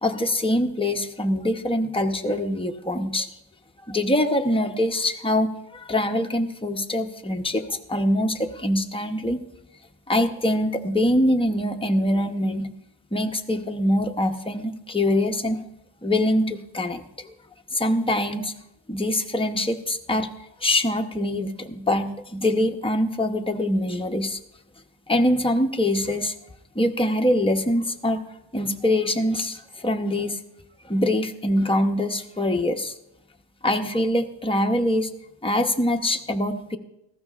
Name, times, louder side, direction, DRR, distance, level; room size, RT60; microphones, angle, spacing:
voice 1, 0.0-3.3 3.9-9.4 10.1-12.7 13.1-15.6 16.0-17.3 17.7-18.5 18.9-20.3 20.6-24.4 25.1-26.3 26.7-28.2 28.5-30.4 30.8-32.9 33.6-35.1 35.4-36.8, left 1 dB, 10° left, 4 dB, 0.8 m, -24 dB
18.5 x 14.5 x 2.4 m, 0.84 s
wide cardioid pair, 70°, 45 cm